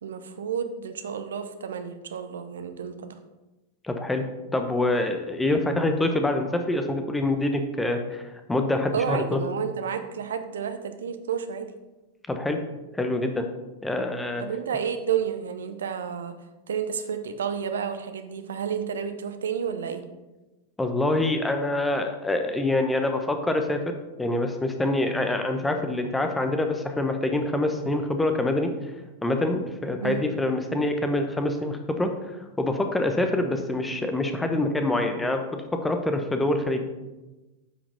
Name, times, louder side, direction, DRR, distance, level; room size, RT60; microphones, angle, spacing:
voice 1, 0.0-3.0 8.9-11.7 14.4-16.3 16.7-20.0 30.0-30.2, right 7 dB, 65° right, 9 dB, 0.7 m, -30 dB
voice 2, 3.8-4.2 4.5-8.2 8.5-9.4 12.3-12.6 12.9-13.5 13.8-14.4 20.8-28.7 29.2-32.1 32.6-36.8, left 2 dB, 10° left, 6 dB, 1.0 m, -25 dB
9.5 x 6.0 x 4.1 m, 1.1 s
figure-of-eight pair, 90°, 0 cm